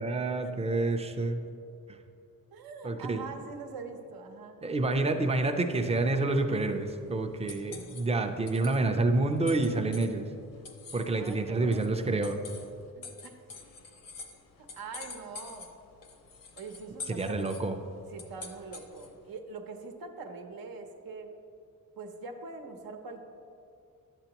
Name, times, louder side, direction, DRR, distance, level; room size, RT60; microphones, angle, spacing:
voice 1, 0.0-1.4 1.9-2.0 2.8-3.2 4.6-10.3 10.9-12.4 17.1-17.8, right 2 dB, 20° right, 5 dB, 0.4 m, -28 dB
voice 2, 2.5-4.7 11.2-11.9 12.9-13.4 14.7-15.7 16.6-17.5 18.1-21.3 22.0-23.2, right 4 dB, 85° right, 4 dB, 0.8 m, -43 dB
sound 1, 6.4-19.3, left 4 dB, 70° left, 0.9 m, -48 dB
11.0 x 7.9 x 2.9 m, 2.5 s
wide cardioid pair, 170°, 35 cm